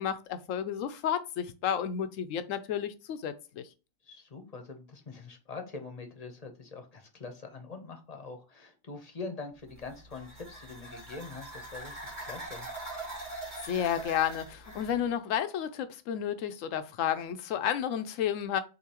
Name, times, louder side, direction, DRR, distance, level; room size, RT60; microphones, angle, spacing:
voice 1, 0.0-3.6 13.6-18.6, left 9 dB, 80° left, 1.0 m, -31 dB
voice 2, 4.0-12.7, left 4 dB, 35° left, 0.8 m, -44 dB
sound 1, 9.7-15.0, right 2 dB, 35° right, 2.2 m, -43 dB
6.5 x 2.8 x 2.9 m
omnidirectional pair, 1.3 m